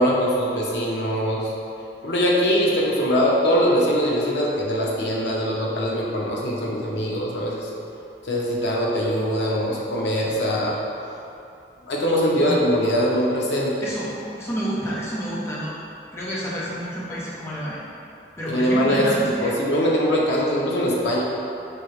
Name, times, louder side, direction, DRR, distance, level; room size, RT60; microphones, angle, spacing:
voice 1, 0.0-1.5 2.0-7.7 8.2-10.8 11.9-13.7 18.5-21.2, equal, 85° left, -3 dB, 0.7 m, -22 dB
voice 2, 13.8-15.8 16.1-17.8 18.4-19.5, equal, 15° left, -7 dB, 0.6 m, -29 dB
4.5 x 2.8 x 3.1 m, 2.7 s
head